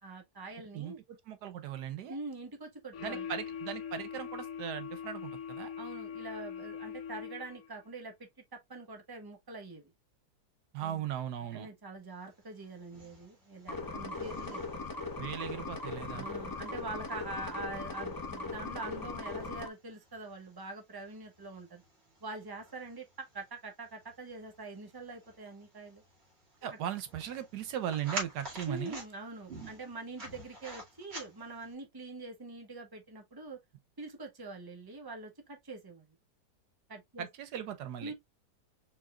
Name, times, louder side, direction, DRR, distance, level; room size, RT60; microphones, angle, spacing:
voice 1, 0.0-1.0 2.1-3.2 5.8-8.1 8.5-9.9 10.8-11.0 11.5-14.7 15.3-15.4 16.1-21.8 22.2-26.0 28.7-33.6 34.0-36.2 36.9-37.3 38.0-38.1, right 3 dB, 15° right, 1.1 m, -44 dB
voice 2, 0.7-2.2 3.0-5.7 10.7-11.7 15.2-16.3 26.6-29.0 37.2-38.1, right 10 dB, 80° right, 1.3 m, -38 dB
sound 1, 2.9-7.8, left 8 dB, 65° left, 1.2 m, -42 dB
sound 2, 12.3-31.7, right 1 dB, 40° right, 2.3 m, -49 dB
sound 3, 13.7-19.7, left 3 dB, 30° left, 0.4 m, -39 dB
4.7 x 4.2 x 2.3 m
omnidirectional pair, 1.8 m